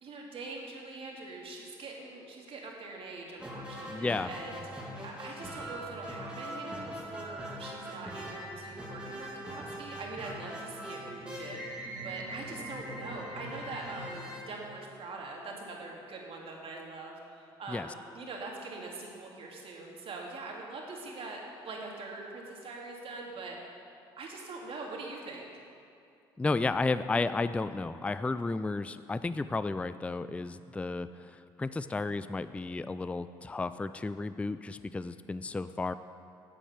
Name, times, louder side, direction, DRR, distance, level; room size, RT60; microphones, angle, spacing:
voice 1, 0.0-4.6 5.0-23.6 24.2-25.5, right 3 dB, 50° right, -1 dB, 2.3 m, -43 dB
sound 1, 3.4-15.3, right 1 dB, 10° right, 2.5 m, -42 dB
voice 2, 3.9-4.3 17.7-17.9 26.4-35.9, left 3 dB, 10° left, 13 dB, 0.3 m, -33 dB
8.5 x 8.5 x 6.6 m, 2.5 s
hypercardioid pair, 65°, 12 cm